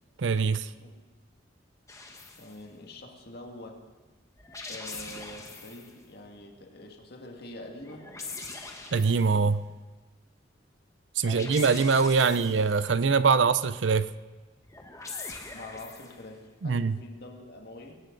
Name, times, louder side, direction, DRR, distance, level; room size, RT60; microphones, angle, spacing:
voice 1, 0.2-0.7 8.9-9.6 11.2-14.1 16.6-17.0, right 5 dB, 70° right, 14 dB, 0.6 m, -23 dB
sound 1, 1.9-2.6 4.4-5.9 7.8-9.5 11.2-12.8 14.6-16.3, left 3 dB, 15° left, 1.3 m, -42 dB
voice 2, 2.4-3.8 4.7-8.2 11.2-11.7 12.0-12.5 15.5-18.0, left 1 dB, 55° left, 2 dB, 2.1 m, -45 dB
19.5 x 18.0 x 4.0 m, 1.3 s
head